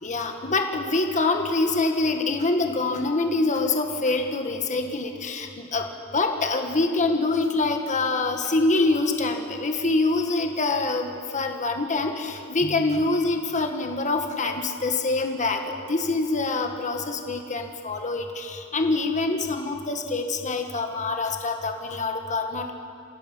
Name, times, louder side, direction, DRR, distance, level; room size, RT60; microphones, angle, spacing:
voice 1, 0.0-5.8 6.1-15.6 15.9-22.7, left 3 dB, 35° left, 4 dB, 1.6 m, -25 dB
29.5 x 16.5 x 5.7 m, 2.6 s
head